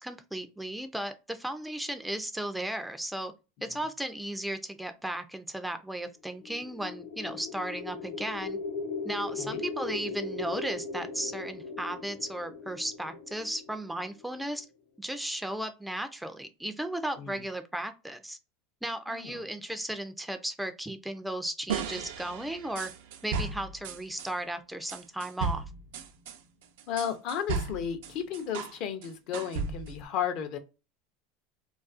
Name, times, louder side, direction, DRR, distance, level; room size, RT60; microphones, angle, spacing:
voice 1, 0.0-3.3 3.6-8.6 9.0-14.7 15.0-18.4 18.8-22.9 23.2-25.6, right 1 dB, 5° right, 8 dB, 0.3 m, -35 dB
sound 1, 6.3-14.4, left 4 dB, 90° left, 0.8 m, -38 dB
sound 2, 21.7-24.3 24.9-28.8 29.0-30.0, right 5 dB, 80° right, 0.4 m, -35 dB
voice 2, 26.9-30.6, left 8 dB, 55° left, 8 dB, 0.5 m, -34 dB
2.4 x 2.3 x 2.4 m, 0.29 s
supercardioid pair, 115°, 0 cm